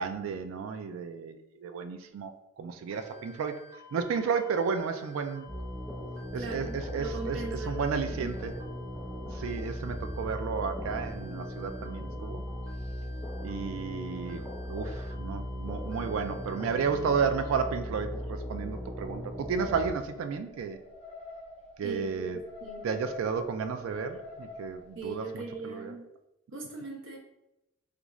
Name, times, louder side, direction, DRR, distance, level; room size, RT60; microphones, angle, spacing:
voice 1, 0.0-3.6 3.9-5.5 6.3-8.6 9.3-12.4 13.4-20.8 21.8-22.4 22.8-26.0, right 5 dB, 80° right, 9 dB, 0.3 m, -32 dB
sound 1, 2.9-17.5, left 4 dB, 20° right, 0.9 m, -53 dB
sound 2, 5.5-19.9, equal, 5° left, 0.4 m, -38 dB
voice 2, 6.3-8.3 21.8-22.9 24.9-26.1 26.5-27.2, right 3 dB, 65° right, 0 dB, 0.8 m, -40 dB
sound 3, 18.7-25.6, left 3 dB, 30° left, 0.7 m, -48 dB
3.5 x 2.5 x 3.1 m, 0.92 s
head